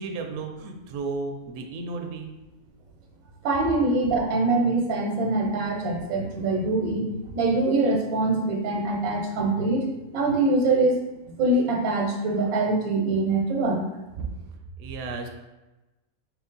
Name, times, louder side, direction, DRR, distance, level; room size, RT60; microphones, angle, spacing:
voice 1, 0.0-2.3 14.2-14.3 14.8-15.3, right 4 dB, 70° right, 3 dB, 0.8 m, -33 dB
voice 2, 3.4-7.1 7.3-9.9 10.1-11.0 11.4-13.8, right 2 dB, 90° right, 1 dB, 1.2 m, -23 dB
3.1 x 3.0 x 3.8 m, 1.1 s
omnidirectional pair, 1.4 m